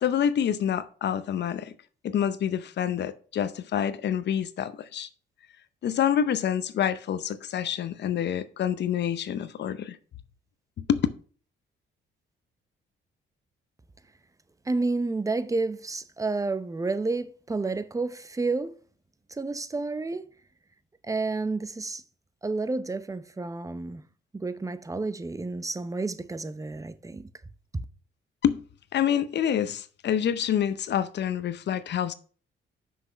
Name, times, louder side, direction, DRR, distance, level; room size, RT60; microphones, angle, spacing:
voice 1, 0.0-1.7 2.0-5.1 5.8-10.0 10.8-11.0 28.4-28.6 28.9-32.1, left 9 dB, 60° left, 0.7 m, -27 dB
voice 2, 14.7-18.7 19.3-20.3 21.0-22.0 22.4-24.0 24.3-27.3 27.7-27.8, right 3 dB, 15° right, 0.7 m, -30 dB
6.2 x 6.0 x 5.6 m
cardioid pair, 90°, 20 cm